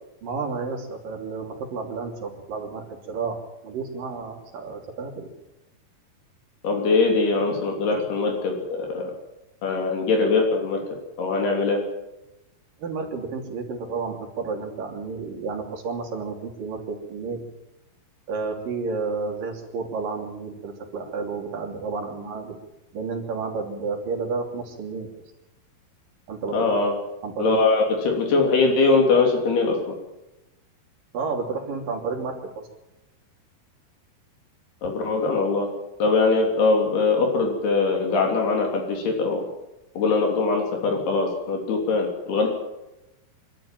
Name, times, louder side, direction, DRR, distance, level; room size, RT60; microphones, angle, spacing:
voice 1, 0.2-3.4 3.6-5.3 7.9-8.1 12.8-17.5 18.3-22.6 22.9-25.1 26.3-26.7 27.2-27.6 31.1-32.7, right 4 dB, 60° right, 2 dB, 4.6 m, -31 dB
voice 2, 6.6-9.0 9.6-10.8 11.2-11.8 26.5-26.9 27.4-30.0 34.8-35.7 36.0-39.4 40.0-42.5, left 3 dB, 75° left, 1 dB, 5.2 m, -22 dB
26.5 x 13.0 x 9.1 m, 0.96 s
omnidirectional pair, 4.7 m